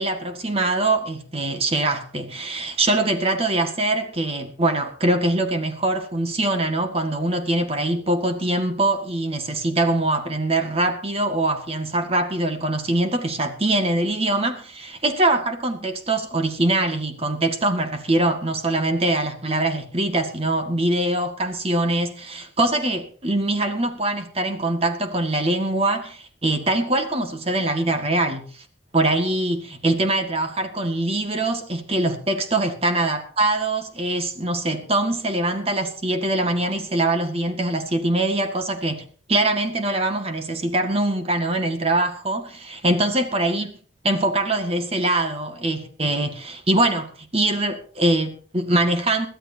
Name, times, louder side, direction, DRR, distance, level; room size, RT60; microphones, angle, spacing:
voice 1, 0.0-28.6 28.9-43.7 44.0-49.3, right 2 dB, 30° right, 1.8 m, -23 dB
22.5 x 14.5 x 2.8 m
head